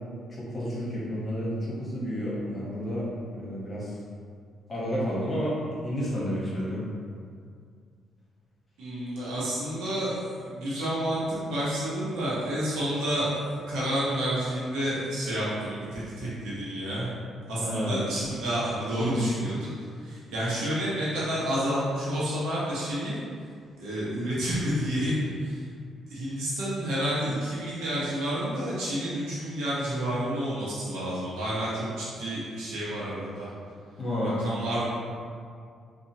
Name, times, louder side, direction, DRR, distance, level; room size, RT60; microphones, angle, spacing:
voice 1, 0.3-3.1 3.3-3.9 4.7-5.5 5.8-6.8 17.6-18.0 19.0-19.2 34.0-34.4 34.7-34.8, equal, 35° left, -7 dB, 1.0 m, -30 dB
voice 2, 8.8-17.1 17.5-23.2 23.8-25.6 26.1-33.5 34.2-34.9, equal, 90° right, -9 dB, 0.8 m, -30 dB
2.8 x 2.3 x 2.7 m, 2.2 s
cardioid pair, 90°, 0 cm